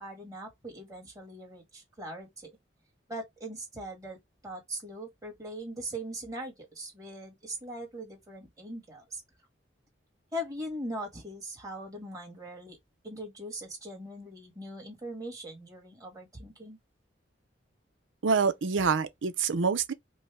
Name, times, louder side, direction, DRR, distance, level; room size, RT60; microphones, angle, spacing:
voice 1, 0.0-2.5 3.1-4.2 4.4-9.2 10.3-12.8 13.0-16.8, right 1 dB, 20° right, 1.8 m, -40 dB
voice 2, 18.2-19.9, right 5 dB, 85° right, 0.6 m, -26 dB
5.3 x 2.2 x 3.3 m
head